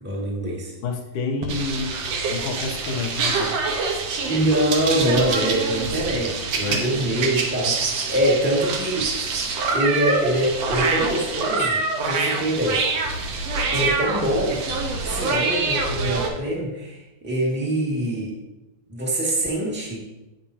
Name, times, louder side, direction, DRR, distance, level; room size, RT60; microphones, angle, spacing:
voice 1, 0.0-0.7 4.3-7.7 8.1-9.3 9.7-12.8 13.7-14.6 15.0-18.3 18.9-20.1, right 1 dB, 5° right, -4 dB, 1.2 m, -24 dB
voice 2, 0.8-2.0 2.3-3.5 6.6-7.3 7.6-7.7, left 4 dB, 85° left, 3 dB, 2.5 m, -29 dB
sound 1, 1.4-16.3, right 4 dB, 65° right, 2.0 m, -25 dB
10.5 x 9.0 x 2.8 m, 1.0 s
omnidirectional pair, 3.6 m